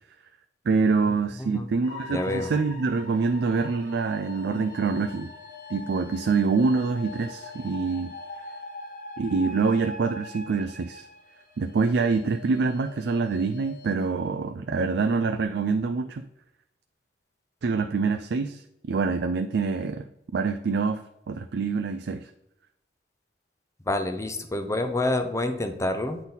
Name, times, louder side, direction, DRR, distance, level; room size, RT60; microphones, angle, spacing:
voice 1, 0.7-5.3 5.7-8.1 9.2-11.0 11.6-16.2 17.6-18.6 18.9-20.0 20.3-22.3, right 4 dB, 65° right, 7 dB, 0.4 m, -25 dB
sound 1, 1.8-14.1, left 3 dB, 50° left, 1.2 m, -43 dB
voice 2, 2.1-2.5 23.9-26.2, left 2 dB, 15° left, 7 dB, 0.6 m, -28 dB
8.6 x 4.0 x 4.0 m, 0.84 s
head